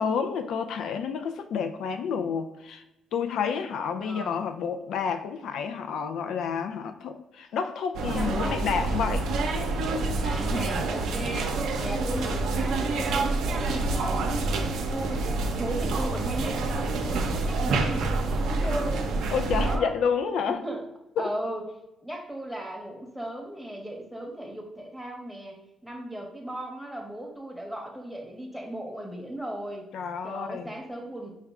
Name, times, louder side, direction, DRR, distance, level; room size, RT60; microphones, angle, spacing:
voice 1, 0.0-2.8 3.1-9.3 19.3-20.6 21.2-21.3 29.9-30.7, left 6 dB, 75° left, 8 dB, 0.3 m, -29 dB
voice 2, 4.0-4.4 8.1-8.6 10.2-14.3 14.9-19.1 19.6-19.9 20.6-20.8 21.2-21.6 22.0-25.5 25.8-29.8 30.2-31.3, right 1 dB, ahead, 0 dB, 0.9 m, -36 dB
sound 1, 7.9-19.8, right 3 dB, 80° right, 0.5 m, -27 dB
4.6 x 2.1 x 3.6 m, 0.90 s
cardioid pair, 90°, 0 cm